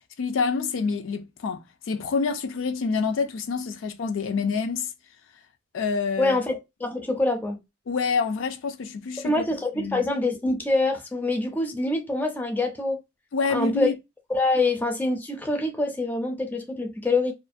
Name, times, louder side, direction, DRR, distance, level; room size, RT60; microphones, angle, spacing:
voice 1, 0.2-4.9 5.7-6.4 7.9-9.3 9.7-10.1 13.3-13.9, left 5 dB, 85° left, 0.4 m, -27 dB
voice 2, 6.2-7.6 9.2-13.0 13.5-13.9 14.3-17.3, left 2 dB, 10° left, 0.4 m, -25 dB
2.4 x 2.1 x 2.4 m
head